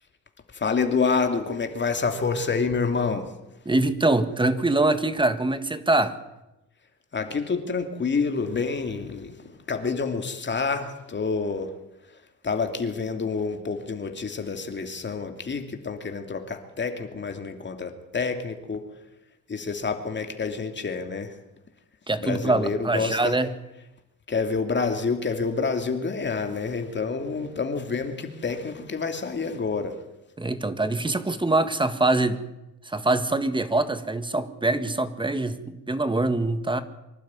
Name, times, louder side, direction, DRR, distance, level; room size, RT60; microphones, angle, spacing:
voice 1, 0.5-3.3 7.1-11.7 12.4-18.9 19.5-21.4 22.2-23.4 24.3-30.0, left 4 dB, 35° left, 6 dB, 2.8 m, -28 dB
voice 2, 3.6-6.2 22.1-23.5 30.4-32.4 32.8-36.8, right 2 dB, 15° right, 11 dB, 1.7 m, -24 dB
25.0 x 12.0 x 9.8 m, 0.97 s
cardioid pair, 90°, 30 cm